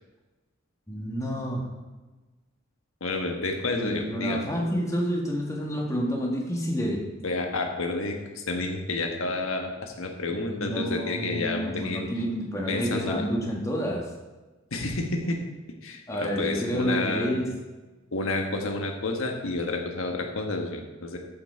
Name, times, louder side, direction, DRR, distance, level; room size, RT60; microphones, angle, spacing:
voice 1, 0.9-1.6 3.8-7.0 10.3-14.1 16.1-17.5, equal, 15° left, -1 dB, 1.8 m, -29 dB
voice 2, 3.0-4.4 7.2-12.1 12.7-13.2 14.7-15.4 15.8-17.3 18.1-21.2, left 2 dB, 85° left, 3 dB, 1.4 m, -30 dB
14.0 x 6.1 x 4.5 m, 1.2 s
head